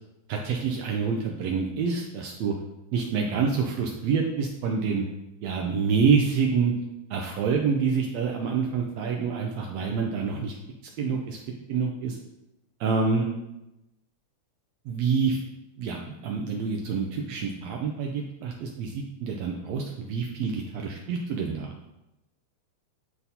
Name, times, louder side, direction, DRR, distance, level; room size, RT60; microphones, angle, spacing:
voice 1, 0.3-2.5 2.9-5.0 5.4-6.7 7.1-10.6 11.0-11.4 11.7-12.2 12.8-13.3 14.9-15.4 15.8-21.7, right 5 dB, 90° right, 1 dB, 1.5 m, -27 dB
11.0 x 4.1 x 2.8 m, 0.94 s
omnidirectional pair, 3.8 m